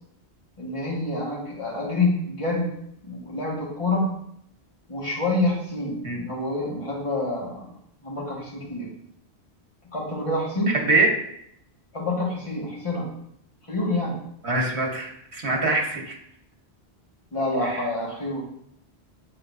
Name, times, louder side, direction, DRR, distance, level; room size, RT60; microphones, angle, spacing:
voice 1, 0.6-2.7 3.0-4.2 4.9-7.6 8.0-8.9 9.9-10.8 11.9-13.1 13.7-14.2 17.3-18.5, left 2 dB, 30° left, -4 dB, 1.7 m, -27 dB
voice 2, 10.7-11.1 14.4-16.2 17.6-17.8, right 3 dB, 75° right, 0 dB, 1.7 m, -24 dB
8.5 x 4.1 x 2.7 m, 0.73 s
omnidirectional pair, 1.1 m